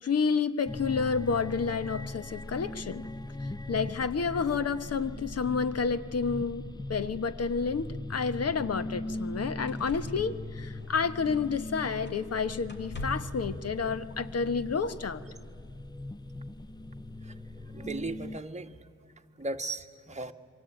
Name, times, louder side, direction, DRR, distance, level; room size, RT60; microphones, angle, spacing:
voice 1, 0.0-3.1 3.7-15.2, left 5 dB, 55° left, 13 dB, 1.1 m, -30 dB
sound 1, 0.6-18.4, left 2 dB, 15° left, 0.6 m, -40 dB
sound 2, 8.4-8.5 9.1-9.3 9.7-11.6 12.0-12.4 12.7-13.4 14.6-14.7, left 1 dB, 35° left, 3.6 m, -44 dB
voice 2, 17.7-18.8 19.4-20.3, right 2 dB, 25° right, 4 dB, 1.5 m, -36 dB
27.5 x 24.0 x 9.0 m, 2.3 s
wide cardioid pair, 100°, 30 cm